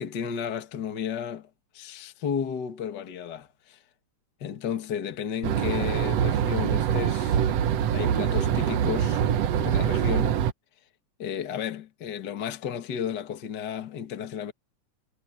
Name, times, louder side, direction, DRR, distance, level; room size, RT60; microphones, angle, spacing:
voice 1, 0.0-3.8 4.4-7.4 7.9-9.2 9.6-10.4 11.2-14.5, left 8 dB, 40° left, 2.0 m, -33 dB
sound 1, 5.4-10.5, right 9 dB, 65° right, 2.0 m, -24 dB
omnidirectional pair, 3.4 m